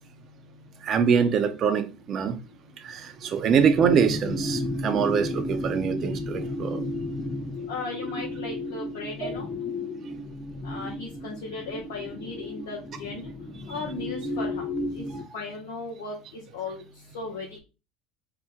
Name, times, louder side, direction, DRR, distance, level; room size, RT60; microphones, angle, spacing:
voice 1, 0.8-2.4 2.8-6.8 9.2-9.3 15.1-15.2, right 7 dB, 45° right, 0.5 m, -24 dB
sound 1, 3.5-15.2, left 1 dB, 20° left, 0.7 m, -33 dB
voice 2, 7.7-9.5 10.6-13.2 13.7-14.7 14.9-15.1 15.3-16.8 17.1-17.6, left 3 dB, 80° left, 0.7 m, -36 dB
2.7 x 2.2 x 3.5 m
hypercardioid pair, 75°, 0 cm